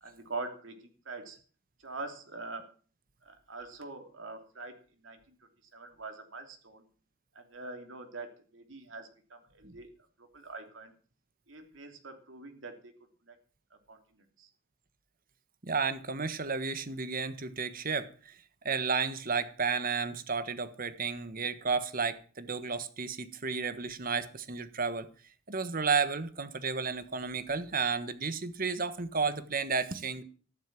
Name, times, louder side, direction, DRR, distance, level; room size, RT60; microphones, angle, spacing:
voice 1, 0.0-1.4 1.8-2.7 3.2-5.3 5.7-6.8 7.3-9.9 10.2-10.9 11.5-12.9 13.2-13.3 13.9-14.5, right 3 dB, 75° right, 3.1 m, -44 dB
voice 2, 15.6-18.3 18.6-25.1 25.5-30.2, right 5 dB, 45° right, 1.4 m, -32 dB
14.5 x 11.5 x 6.1 m
head